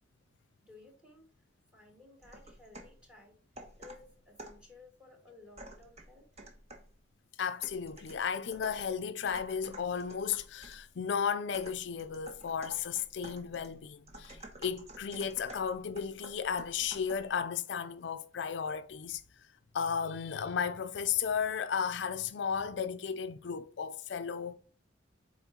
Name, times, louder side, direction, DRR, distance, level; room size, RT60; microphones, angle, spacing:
voice 1, 0.6-1.5 1.7-3.4 3.8-6.3, left 3 dB, 5° right, 1.9 m, -56 dB
sound 1, 2.2-3.0 3.6-4.7 5.6-7.0 7.6-10.9 11.5-17.4, right 1 dB, 35° right, 1.1 m, -51 dB
voice 2, 7.4-19.2 19.7-24.5, left 7 dB, 65° left, 0.4 m, -34 dB
8.1 x 4.3 x 2.8 m
head